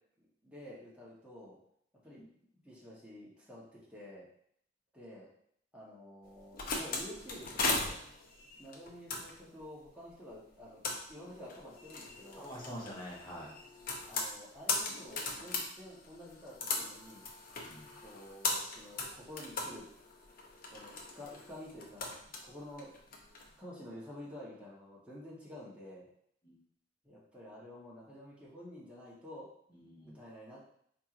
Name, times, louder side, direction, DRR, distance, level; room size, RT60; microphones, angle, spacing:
voice 1, 0.2-1.6 2.0-2.2 2.6-4.3 4.9-5.3 5.7-8.0 8.6-10.8 11.1-12.5 14.0-17.3 18.0-19.9 20.7-22.9 23.6-26.1 27.0-29.5 30.0-30.6, left 1 dB, 5° right, -6 dB, 1.0 m, -50 dB
sound 1, 6.3-23.5, left 3 dB, 55° left, 0.6 m, -39 dB
voice 2, 12.4-13.5 17.6-17.9 26.4-26.6 29.7-30.2, equal, 25° left, -6 dB, 1.2 m, -46 dB
4.3 x 2.9 x 2.5 m, 0.67 s
head